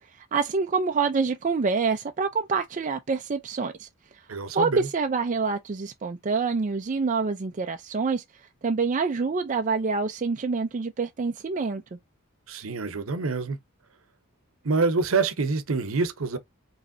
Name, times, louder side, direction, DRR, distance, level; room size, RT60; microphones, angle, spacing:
voice 1, 0.2-3.9 4.5-8.2 8.6-12.0, right 4 dB, 35° right, 0.4 m, -26 dB
voice 2, 4.3-4.9 12.5-13.6 14.6-16.4, right 4 dB, 70° right, 0.8 m, -26 dB
5.1 x 3.1 x 2.6 m
head